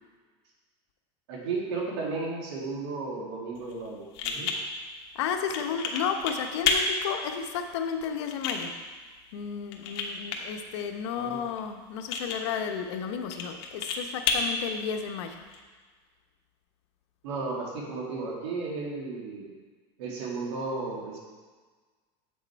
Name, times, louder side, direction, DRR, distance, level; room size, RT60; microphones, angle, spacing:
voice 1, 1.3-4.5 11.2-11.4 17.2-19.5 20.0-21.2, right 3 dB, 75° right, -2 dB, 2.3 m, -34 dB
sound 1, 3.5-15.6, left 4 dB, 65° left, 1.2 m, -34 dB
voice 2, 5.1-8.7 9.3-15.4, left 7 dB, 85° left, 5 dB, 0.9 m, -32 dB
8.3 x 6.5 x 4.6 m, 1.4 s
supercardioid pair, 140°, 14 cm